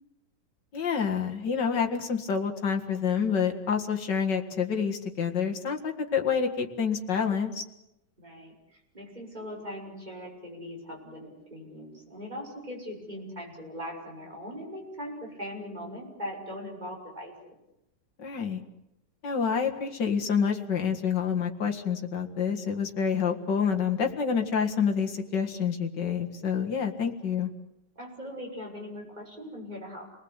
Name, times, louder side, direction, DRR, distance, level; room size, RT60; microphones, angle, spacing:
voice 1, 0.7-7.6 18.2-18.6 19.2-27.5, left 6 dB, 80° left, 3 dB, 2.6 m, -28 dB
voice 2, 8.2-17.5 28.0-30.1, equal, 25° right, 0 dB, 6.4 m, -40 dB
29.0 x 20.0 x 8.2 m, 0.88 s
omnidirectional pair, 1.9 m